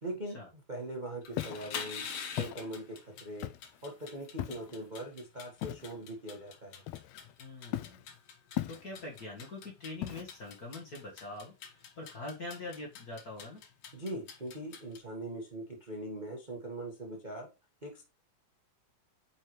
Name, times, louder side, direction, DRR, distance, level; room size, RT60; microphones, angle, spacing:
voice 1, 0.0-2.0 2.3-3.5 3.8-6.8 13.9-17.5 17.8-18.0, right 1 dB, 25° right, -1 dB, 0.9 m, -41 dB
sound 1, 1.2-15.0, left 6 dB, 60° left, 1.9 m, -47 dB
Walk footsteps, 1.3-1.7 2.4-2.6 3.4-3.8 4.4-4.7 5.6-5.9 6.9-7.3 7.7-8.0 8.6-9.1 10.0-10.5, left 15 dB, 80° left, 1.6 m, -37 dB
voice 2, 7.4-8.0 8.7-13.6, left 2 dB, 40° left, -1 dB, 1.5 m, -44 dB
8.5 x 4.7 x 3.2 m, 0.27 s
omnidirectional pair, 3.5 m